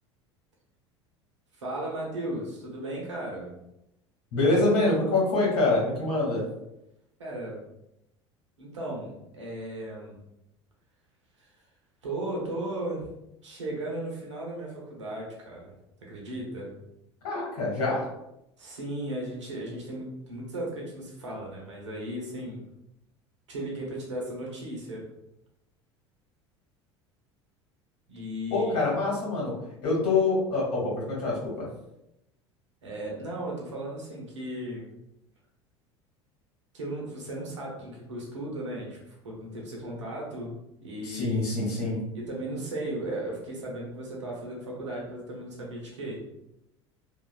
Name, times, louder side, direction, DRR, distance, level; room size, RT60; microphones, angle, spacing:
voice 1, 1.6-3.5 7.2-7.6 8.6-10.2 11.4-11.5 12.0-13.1 13.4-15.7 16.0-16.7 18.6-22.6 23.5-25.0 28.1-28.9 32.8-34.9 36.7-40.5 40.8-41.5 42.1-46.2, right 1 dB, 80° right, -2 dB, 0.9 m, -36 dB
voice 2, 4.3-6.4 17.2-18.0 28.5-29.5 29.8-31.7 41.0-42.0, left 2 dB, 60° left, -4 dB, 1.5 m, -25 dB
3.1 x 2.4 x 2.3 m, 0.86 s
figure-of-eight pair, 70°, 15 cm